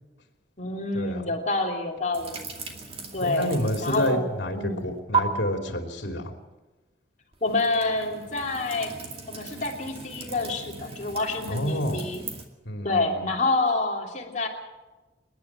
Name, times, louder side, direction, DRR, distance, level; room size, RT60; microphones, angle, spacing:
voice 1, 0.6-2.4 3.1-3.5 3.8-4.3 4.5-4.9 7.4-8.9 9.3-12.3 12.8-14.5, left 2 dB, 40° left, 1 dB, 3.0 m, -27 dB
sound 1, 2.1-4.3 4.6-5.2 7.3-12.5, right 5 dB, 30° right, 2.4 m, -35 dB
voice 2, 3.2-6.4 11.5-12.0 12.6-13.2, equal, 65° left, 4 dB, 3.0 m, -29 dB
26.5 x 11.0 x 8.9 m, 1.2 s
head